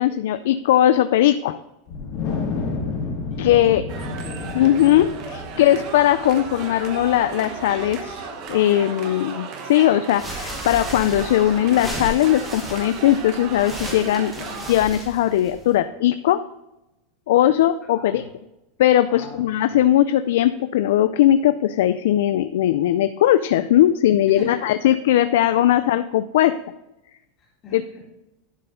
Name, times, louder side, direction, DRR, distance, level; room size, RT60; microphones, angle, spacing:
voice 1, 0.0-1.6 3.4-3.8 4.6-5.1 5.6-16.4 17.3-18.2 18.8-26.6 27.7-28.0, left 12 dB, 65° left, 11 dB, 0.4 m, -19 dB
Wind, 1.9-8.4, left 4 dB, 40° left, 2.1 m, -31 dB
voice 2, 3.3-5.1 5.5-5.8 17.9-18.3 19.1-19.8 24.3-24.9 25.7-25.9 27.4-28.0, left 2 dB, 20° left, -3 dB, 2.2 m, -39 dB
sound 1, 3.9-14.7, right 5 dB, 35° right, 0.9 m, -35 dB
sound 2, 10.1-15.8, equal, 5° right, 1.3 m, -35 dB
11.0 x 4.7 x 3.7 m, 0.91 s
supercardioid pair, 180°, 0 cm